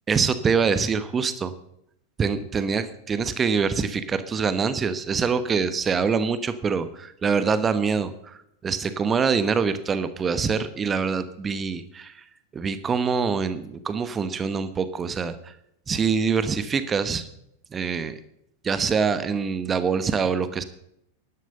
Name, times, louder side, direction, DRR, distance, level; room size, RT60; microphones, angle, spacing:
voice 1, 0.1-1.5 2.2-8.4 8.6-12.2 12.5-15.4 15.9-17.3 17.7-18.2 18.6-20.6, right 5 dB, 20° right, 12 dB, 1.2 m, -24 dB
12.5 x 11.5 x 6.7 m, 0.77 s
figure-of-eight pair, 90°, 0 cm